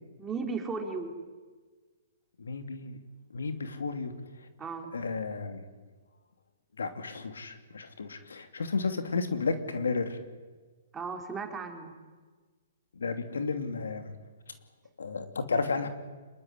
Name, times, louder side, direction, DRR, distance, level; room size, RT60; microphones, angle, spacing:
voice 1, 0.2-1.1 4.6-4.9 10.9-11.9, right 4 dB, 15° right, 3 dB, 4.0 m, -35 dB
voice 2, 2.4-3.0 3.3-4.1 4.4-4.5 4.9-5.6 6.8-10.2 12.9-14.1 15.0-15.9, left 4 dB, 85° left, 8 dB, 2.9 m, -32 dB
25.5 x 22.0 x 9.9 m, 1.4 s
hypercardioid pair, 140°, 0 cm